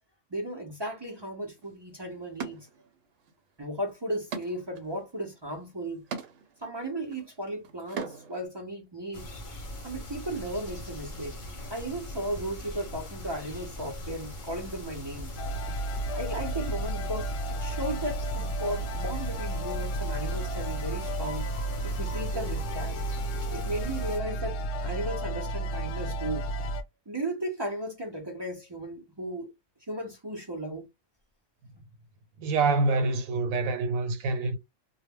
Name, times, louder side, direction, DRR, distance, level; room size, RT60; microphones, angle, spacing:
voice 1, 0.3-2.7 3.6-6.0 6.6-9.3 9.8-11.4 11.7-15.4 16.1-21.5 21.8-23.0 23.5-26.5 27.1-29.5 29.9-30.9, right 1 dB, 40° right, 0.3 m, -35 dB
sound 1, 1.6-1.7 2.4-3.3 3.6-8.5, right 6 dB, 65° right, 0.9 m, -41 dB
sound 2, 9.1-24.2, left 1 dB, 45° left, 0.8 m, -41 dB
sound 3, 15.4-26.8, right 1 dB, 75° left, 0.9 m, -32 dB
voice 2, 32.4-34.6, right 3 dB, 85° right, 1.0 m, -26 dB
2.3 x 2.0 x 3.3 m
omnidirectional pair, 1.4 m